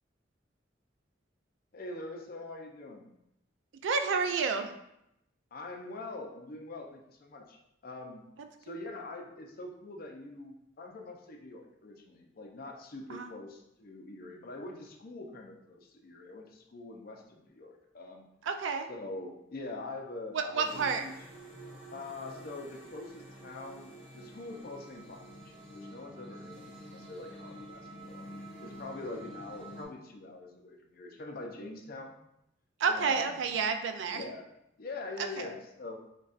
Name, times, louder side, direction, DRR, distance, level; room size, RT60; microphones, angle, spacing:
voice 1, 1.7-3.1 5.5-7.6 7.8-8.3 8.6-18.2 18.9-21.1 21.9-28.3 28.6-32.2 32.9-33.5 34.1-34.5 34.8-36.0, left 2 dB, 55° left, 2 dB, 0.5 m, -44 dB
voice 2, 3.8-4.7 13.1-13.3 18.4-18.9 20.3-21.0 32.8-34.2 35.4-35.5, right 5 dB, 85° right, 7 dB, 0.4 m, -30 dB
sound 1, 20.6-29.8, right 1 dB, 55° right, 1.0 m, -48 dB
5.1 x 2.3 x 2.4 m, 0.81 s
head